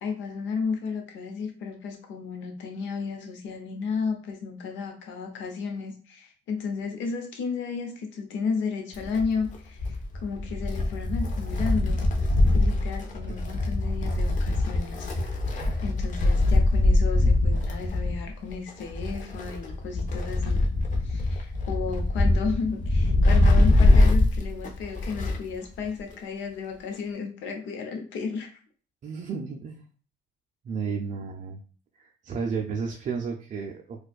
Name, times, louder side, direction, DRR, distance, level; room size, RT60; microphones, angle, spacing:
voice 1, 0.0-12.0 12.5-15.1 15.8-20.7 21.0-28.5, left 5 dB, 80° left, 4 dB, 0.8 m, -33 dB
Wind, 8.9-25.5 25.8-25.9 26.9-27.0, left 2 dB, 40° left, 0.7 m, -23 dB
voice 2, 29.0-29.9 30.6-31.6 31.9-34.0, right 5 dB, 40° right, 2 dB, 0.4 m, -32 dB
4.2 x 2.3 x 2.3 m, 0.40 s
cardioid pair, 105°, 19 cm